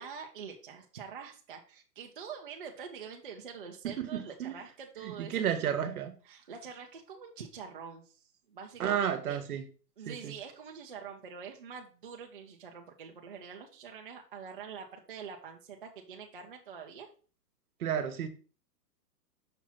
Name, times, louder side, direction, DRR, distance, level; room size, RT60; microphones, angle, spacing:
voice 1, 0.0-5.6 6.2-9.4 10.0-17.1, right 6 dB, 35° right, 0.5 m, -45 dB
voice 2, 3.8-4.6 5.0-6.1 8.8-9.6 10.1-10.3 17.8-18.3, right 9 dB, 60° right, 1.1 m, -32 dB
6.1 x 2.9 x 5.5 m
hypercardioid pair, 170°, 49 cm